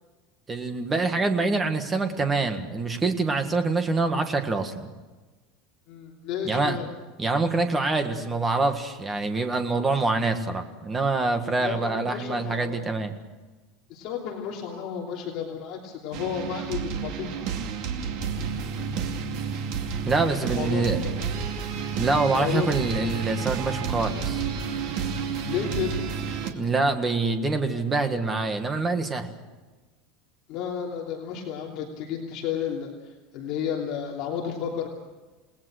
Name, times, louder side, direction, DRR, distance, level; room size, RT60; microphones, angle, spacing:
voice 1, 0.5-4.9 6.4-6.8 7.2-13.1 20.1-21.0 22.0-24.5 26.5-29.3, right 3 dB, 15° right, 7 dB, 1.7 m, -25 dB
voice 2, 5.9-6.8 11.6-12.9 13.9-17.5 20.4-21.1 22.2-22.7 25.5-26.0 30.5-34.9, left 8 dB, 40° left, -1 dB, 3.1 m, -32 dB
sound 1, 16.1-26.5, right 6 dB, 50° right, 2.5 m, -30 dB
29.0 x 19.0 x 6.5 m, 1.2 s
supercardioid pair, 175°, 0 cm